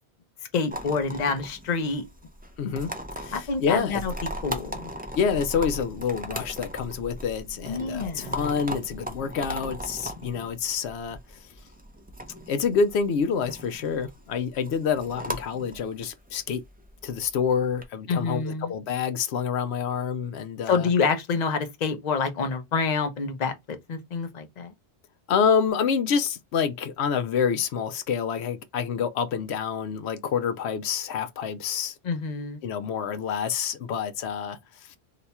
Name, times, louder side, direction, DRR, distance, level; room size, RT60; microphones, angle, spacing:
voice 1, 0.5-2.0 3.3-4.1 4.4-4.9 7.7-8.5 18.1-18.7 20.7-24.7 32.0-32.6, left 5 dB, 45° left, 0.7 m, -27 dB
sound 1, 0.7-17.8, equal, 15° right, 0.4 m, -38 dB
voice 2, 2.6-2.9 3.2-4.0 5.1-11.5 12.3-16.6 17.0-20.9 25.3-32.0 32.6-35.0, left 6 dB, 80° left, 0.8 m, -27 dB
2.8 x 2.3 x 4.0 m
omnidirectional pair, 1.1 m